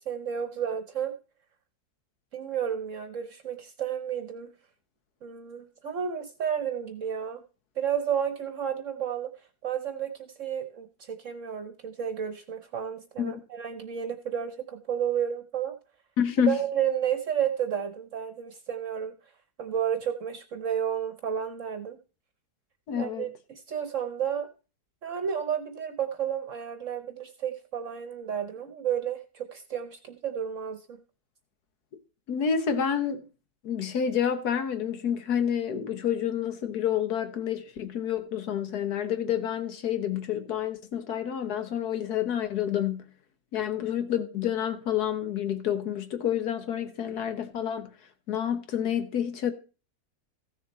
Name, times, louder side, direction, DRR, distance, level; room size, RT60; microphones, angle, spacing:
voice 1, 0.1-1.1 2.3-4.5 5.2-7.4 7.8-9.3 9.6-15.8 16.5-19.1 19.6-22.0 23.0-24.5 25.0-31.0, right 8 dB, 55° right, 1.1 m, -31 dB
voice 2, 16.2-16.6 22.9-23.3 32.3-33.3 33.6-43.1 43.5-47.9 48.3-49.5, left 9 dB, 75° left, 1.7 m, -29 dB
14.5 x 6.7 x 4.1 m
omnidirectional pair, 1.7 m